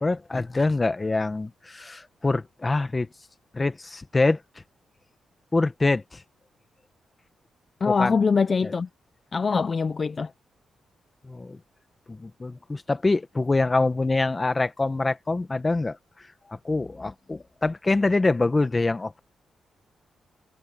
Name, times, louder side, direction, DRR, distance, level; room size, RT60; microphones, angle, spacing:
voice 1, 0.0-3.1 3.5-4.4 5.5-6.2 7.9-8.2 8.6-8.7 11.2-11.6 12.1-16.0 16.5-19.2, left 3 dB, 25° left, 1.6 m, -25 dB
voice 2, 7.8-8.9 9.3-10.3, left 5 dB, 40° left, 0.8 m, -23 dB
cardioid pair, 85°, 0 cm